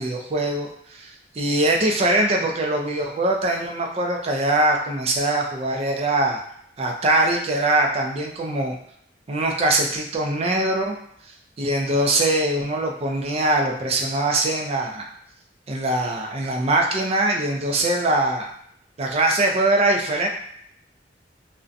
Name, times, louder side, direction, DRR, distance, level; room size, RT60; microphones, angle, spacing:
voice 1, 0.0-6.4 6.8-8.8 9.3-11.0 11.6-15.1 15.7-18.5 19.0-20.3, right 2 dB, 35° right, 1 dB, 0.4 m, -22 dB
2.5 x 2.1 x 2.5 m, 0.69 s
head